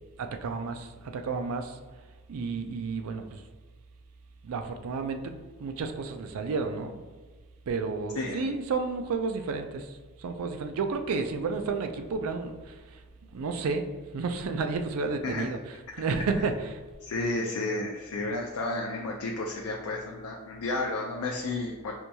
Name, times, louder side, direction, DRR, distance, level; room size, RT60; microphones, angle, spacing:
voice 1, 0.2-1.8 2.3-3.4 4.4-5.2 5.6-7.0 7.7-13.0 13.3-13.8 14.1-16.8, right 4 dB, 75° right, 6 dB, 0.4 m, -31 dB
voice 2, 8.2-8.5 15.2-15.5 17.0-21.9, left 2 dB, 75° left, 0 dB, 0.4 m, -32 dB
4.4 x 2.7 x 2.2 m, 1.4 s
head